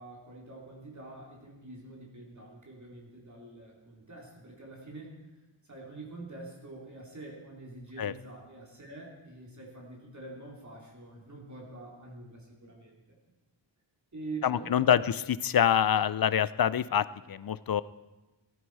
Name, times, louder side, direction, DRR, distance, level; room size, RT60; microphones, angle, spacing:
voice 1, 0.0-13.2 14.1-15.1, right 2 dB, 40° right, -2 dB, 3.4 m, -46 dB
voice 2, 14.4-15.0 15.4-17.8, left 9 dB, 50° left, 17 dB, 0.5 m, -25 dB
17.5 x 14.0 x 4.8 m, 1.1 s
wide cardioid pair, 130°, 46 cm